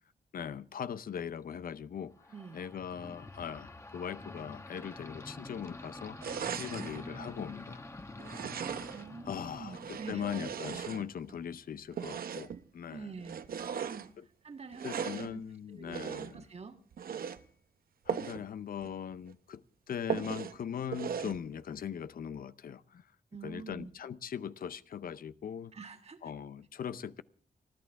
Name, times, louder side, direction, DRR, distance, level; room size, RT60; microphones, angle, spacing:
voice 1, 0.3-2.3 2.5-6.2 6.6-7.8 9.2-13.1 14.2-14.3 14.8-16.5 18.1-23.1 23.4-25.7 26.2-27.2, left 8 dB, 75° left, 0.7 m, -40 dB
sound 1, 2.2-11.5, left 2 dB, 20° left, 1.2 m, -48 dB
sound 2, 6.2-7.0 8.2-9.1 9.7-11.3 11.9-12.6 13.2-14.1 14.7-15.3 15.9-16.4 16.9-17.4 18.1-18.4 18.8-18.9 19.3-19.4 20.1-20.6 20.9-21.4, right 7 dB, 80° right, 0.8 m, -38 dB
voice 2, 6.7-7.4 8.9-10.2 10.8-10.9 12.9-14.1 14.4-16.0 16.3-16.8 23.3-23.9 25.7-26.3, right 5 dB, 45° right, 1.6 m, -47 dB
30.0 x 11.5 x 3.6 m
wide cardioid pair, 125°, 15 cm